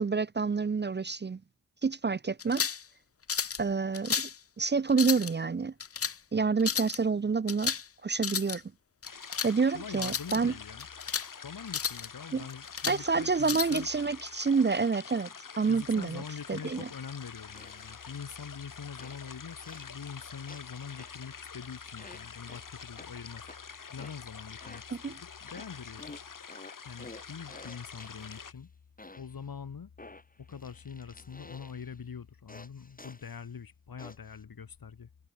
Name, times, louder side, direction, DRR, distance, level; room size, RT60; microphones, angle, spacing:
voice 1, 0.0-1.4 1.8-2.7 3.6-4.3 4.6-5.7 6.3-7.7 8.0-8.6 9.4-10.5 12.3-12.4 12.9-15.3 15.6-16.2 16.5-16.9 25.0-25.2, right 4 dB, 30° right, 0.5 m, -28 dB
sound 1, 2.4-2.8 3.3-3.6 3.9-4.4 4.9-5.3 5.8-6.2 6.6-7.0 7.5-7.9 8.1-8.6 9.0-9.5 9.9-10.4 10.8-11.3 11.7-12.1 12.5-13.0 13.4-13.8, left 7 dB, 40° left, 0.6 m, -32 dB
sound 2, 9.0-28.5, left 6 dB, 65° left, 1.3 m, -47 dB
voice 2, 9.7-10.9 11.4-13.9 15.7-23.5 23.9-26.2 26.9-28.7 29.2-29.9 30.4-35.1, left 6 dB, 90° left, 1.8 m, -44 dB
sound 3, 17.5-18.5 19.0-20.1 20.5-21.4 22.0-23.1 23.5-25.1 25.5-28.6 29.0-29.5 30.0-32.0 32.5-33.5 34.0-34.4, left 2 dB, 25° left, 1.6 m, -51 dB
wide cardioid pair, 55°, 35 cm